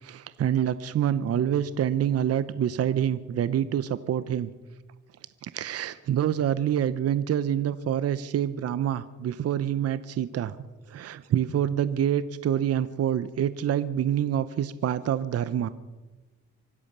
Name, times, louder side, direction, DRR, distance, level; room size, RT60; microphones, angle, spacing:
voice 1, 0.0-4.5 5.4-10.6 10.9-15.7, right 10 dB, 55° right, 15 dB, 0.7 m, -26 dB
25.0 x 8.6 x 6.7 m, 1.2 s
cardioid pair, 90°, 30 cm